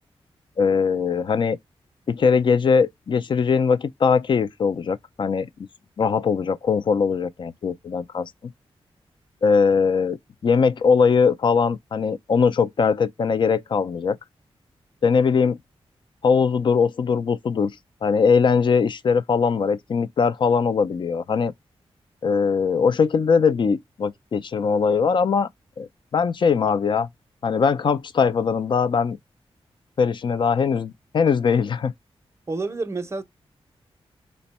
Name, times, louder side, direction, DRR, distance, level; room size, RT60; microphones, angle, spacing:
voice 1, 0.6-1.6 2.1-5.5 6.0-8.3 9.4-14.2 15.0-15.6 16.2-17.7 18.0-21.5 22.2-25.5 25.8-27.1 27.4-29.2 30.0-31.9, left 5 dB, 50° left, 0.4 m, -21 dB
voice 2, 32.5-33.2, right 3 dB, 25° right, 0.6 m, -28 dB
3.4 x 2.1 x 4.1 m
wide cardioid pair, 105°, 10 cm